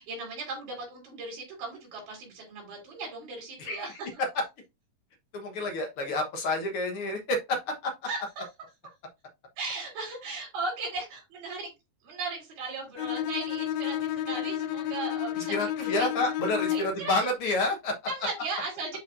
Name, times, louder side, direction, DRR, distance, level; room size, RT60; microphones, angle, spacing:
voice 1, 0.0-4.2 8.1-8.4 9.6-11.7 12.0-15.7 16.0-16.1 16.7-17.3 18.1-19.0, right 3 dB, 80° right, 5.7 m, -37 dB
voice 2, 5.3-7.9 15.4-17.9, left 2 dB, 65° left, 1.3 m, -29 dB
Bowed string instrument, 13.0-17.1, left 11 dB, 85° left, 2.3 m, -31 dB
11.0 x 4.6 x 2.6 m
omnidirectional pair, 4.2 m